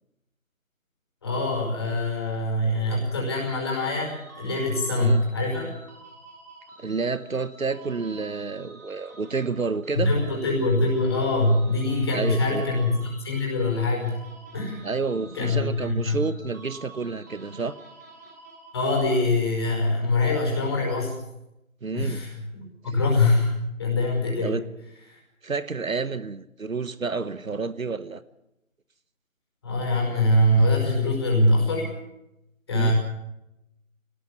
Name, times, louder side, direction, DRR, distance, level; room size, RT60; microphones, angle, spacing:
voice 1, 1.2-5.7 9.9-14.1 14.5-14.8 15.3-16.2 18.7-21.2 21.9-24.5 25.1-25.2 29.6-31.9 32.7-32.9, left 2 dB, 20° left, -2 dB, 5.5 m, -24 dB
sound 1, 4.0-19.2, right 2 dB, 15° right, 2.3 m, -49 dB
voice 2, 6.8-10.1 12.1-12.7 14.8-17.8 21.8-22.2 22.8-23.0 24.4-24.6 25.4-28.2 32.7-32.9, right 4 dB, 70° right, 14 dB, 1.3 m, -29 dB
23.5 x 18.5 x 7.3 m, 0.88 s
figure-of-eight pair, 175°, 41 cm